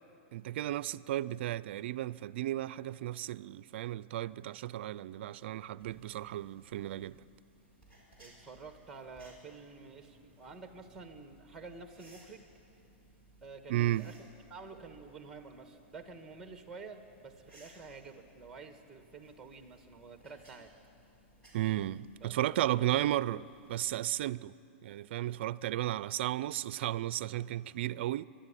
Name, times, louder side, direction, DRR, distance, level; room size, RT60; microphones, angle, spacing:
voice 1, 0.3-7.2 13.7-14.1 21.5-24.6 24.8-28.3, right 14 dB, 55° right, 0.4 m, -34 dB
sound 1, 5.8-24.4, right 1 dB, 15° left, 5.8 m, -62 dB
voice 2, 8.2-12.4 13.4-14.1 14.5-20.7 22.2-22.3 22.6-22.8, right 4 dB, 5° right, 1.6 m, -49 dB
24.5 x 11.5 x 9.9 m
supercardioid pair, 160°, 7 cm